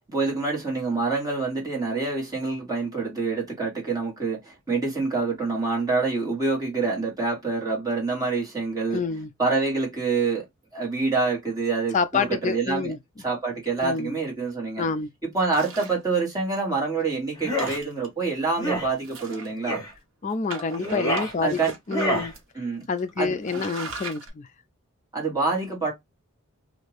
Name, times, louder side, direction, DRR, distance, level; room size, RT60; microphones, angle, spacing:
voice 1, 0.1-9.0 9.4-10.4 10.7-14.9 15.2-19.8 21.4-21.7 22.5-22.9 23.2-23.4 25.1-25.9, right 4 dB, 15° right, 1.6 m, -26 dB
voice 2, 8.9-9.3 11.9-13.0 13.8-14.2 14.8-15.1 20.2-21.6 21.9-22.3 22.9-24.5, left 5 dB, 35° left, 0.3 m, -27 dB
sound 1, 15.5-16.0 16.6-16.7 17.0-17.1 17.5-18.3 19.0-19.8 20.5-22.1 22.3-22.4 23.0-23.1 23.4-24.3, right 4 dB, 60° right, 1.1 m, -39 dB
sound 2, 17.3-17.8 18.5-18.9 19.6-19.9 20.7-21.3 21.9-22.3, equal, 15° left, 1.1 m, -27 dB
2.7 x 2.5 x 3.1 m
head